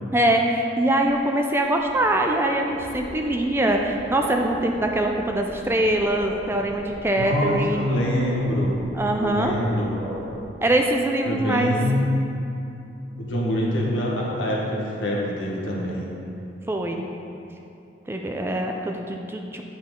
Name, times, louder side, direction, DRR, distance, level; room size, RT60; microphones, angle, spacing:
voice 1, 0.1-7.8 8.9-9.6 10.6-11.7 16.7-17.1 18.1-19.6, right 1 dB, 10° right, 2 dB, 0.3 m, -23 dB
sound 1, 1.6-10.4, right 1 dB, 35° right, 1.3 m, -38 dB
voice 2, 7.2-8.7 9.1-9.9 11.2-12.0 13.2-16.1, left 1 dB, 75° left, -3 dB, 1.4 m, -25 dB
8.2 x 5.7 x 3.7 m, 2.8 s
head